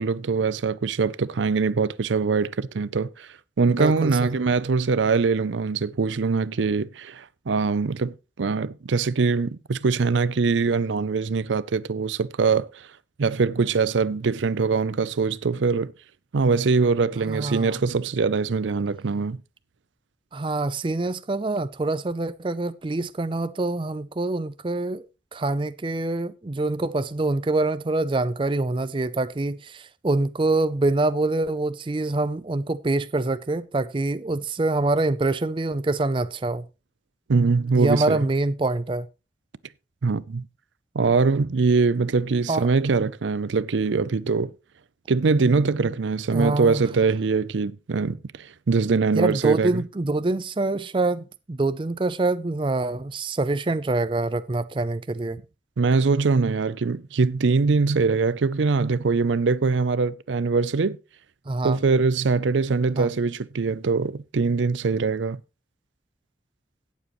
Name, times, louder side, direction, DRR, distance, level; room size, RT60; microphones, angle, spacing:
voice 1, 0.0-3.3 3.6-12.9 13.2-15.9 16.3-19.4 37.3-38.2 40.0-40.5 40.9-44.5 45.1-49.8 55.8-61.0 61.6-65.4, right 4 dB, 85° right, 0.5 m, -23 dB
voice 2, 3.7-4.3 17.3-17.9 20.3-25.1 25.3-36.6 37.7-39.1 42.5-42.7 46.3-46.8 49.1-55.4 61.5-61.8 63.0-63.1, right 2 dB, 25° right, 0.4 m, -25 dB
17.0 x 7.3 x 3.1 m
head